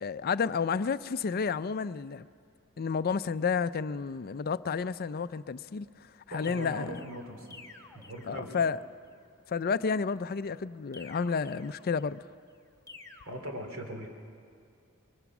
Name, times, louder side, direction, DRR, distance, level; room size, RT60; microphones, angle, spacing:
voice 1, 0.0-2.3 2.8-5.9 6.3-7.0 8.3-8.8 9.5-12.2, left 5 dB, 45° left, 0.4 m, -31 dB
voice 2, 6.3-7.6 7.9-8.5 13.2-14.1, right 1 dB, 65° right, 3.2 m, -40 dB
sound 1, 6.4-8.9 10.9-12.3 12.9-13.3, left 4 dB, 15° left, 1.2 m, -51 dB
23.0 x 22.5 x 6.1 m
head